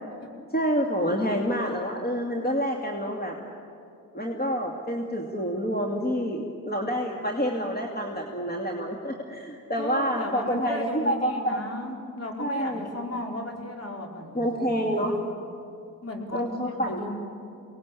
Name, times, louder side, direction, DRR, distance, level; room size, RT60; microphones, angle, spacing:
voice 1, 0.5-3.4 4.1-11.6 12.4-12.9 14.3-15.1 16.3-17.0, equal, 25° left, 1 dB, 2.6 m, -28 dB
voice 2, 9.8-15.2 16.0-16.5 16.8-17.2, left 1 dB, 45° left, 1 dB, 4.8 m, -35 dB
23.5 x 19.0 x 8.5 m, 2.6 s
cardioid pair, 75°, 35 cm